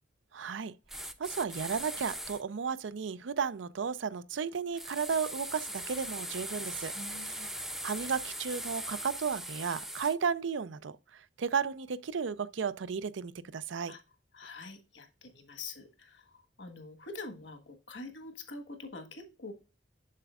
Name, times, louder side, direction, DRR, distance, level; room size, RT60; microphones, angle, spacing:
voice 1, 0.3-7.4 7.8-13.9, right 6 dB, 80° right, 0.5 m, -34 dB
sound 1, 0.9-2.4 4.8-10.2, right 1 dB, ahead, 0.5 m, -40 dB
voice 2, 6.9-7.6 13.9-14.0 14.3-19.5, left 3 dB, 70° left, 1.5 m, -45 dB
7.5 x 6.8 x 2.4 m
head